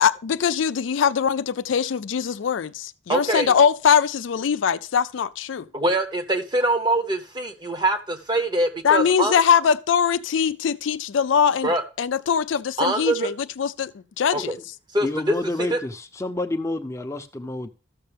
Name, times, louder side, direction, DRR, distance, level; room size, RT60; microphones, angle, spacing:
voice 1, 0.0-5.7 8.8-11.7 12.0-13.9 14.2-14.5, left 7 dB, 80° left, 0.4 m, -22 dB
voice 2, 3.1-3.5 5.7-9.4 11.6-11.8 12.8-13.3 14.3-14.6 14.9-15.8, right 1 dB, 20° right, 0.9 m, -24 dB
voice 3, 15.0-17.7, left 1 dB, 15° left, 0.7 m, -29 dB
13.5 x 6.5 x 3.4 m
head